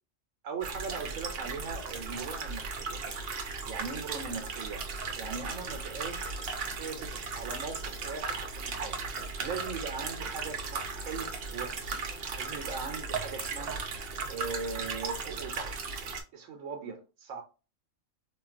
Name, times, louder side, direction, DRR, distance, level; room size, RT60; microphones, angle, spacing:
voice 1, 0.4-3.0 3.7-4.9 5.2-6.5 6.8-9.0 9.4-12.1 12.4-15.8 16.3-17.4, right 5 dB, 85° right, 1.0 m, -40 dB
sound 1, 0.6-16.2, right 4 dB, 55° right, 0.8 m, -36 dB
3.6 x 2.3 x 2.4 m
omnidirectional pair, 1.3 m